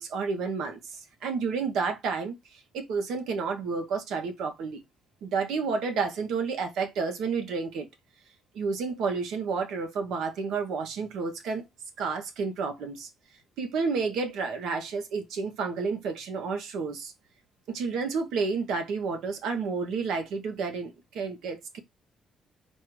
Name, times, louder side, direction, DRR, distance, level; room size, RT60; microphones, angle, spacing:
voice 1, 0.0-4.8 5.2-7.9 8.5-11.6 12.0-13.1 13.6-17.1 17.7-21.8, right 5 dB, 85° right, 1.0 m, -30 dB
4.4 x 2.4 x 4.6 m
cardioid pair, 90°, 0 cm